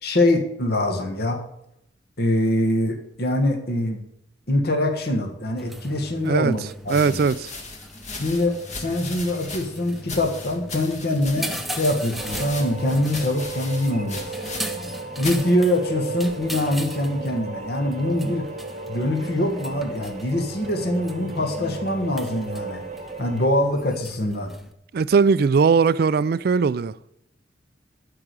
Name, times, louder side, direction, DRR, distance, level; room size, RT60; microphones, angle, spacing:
voice 1, 0.0-1.4 2.2-4.0 4.5-7.3 8.2-14.3 15.2-18.5 18.9-22.8 23.2-24.5, left 1 dB, 55° left, 1.5 m, -24 dB
sound 1, 5.6-24.7, right 1 dB, ahead, 0.6 m, -38 dB
sound 2, 6.9-14.9 15.2-15.5 16.3-16.7, left 3 dB, 35° left, 1.6 m, -38 dB
voice 2, 6.9-7.5 24.9-26.9, right 5 dB, 50° right, 0.3 m, -19 dB
sound 3, 12.2-23.5, right 3 dB, 35° right, 1.0 m, -35 dB
12.0 x 4.9 x 8.1 m
head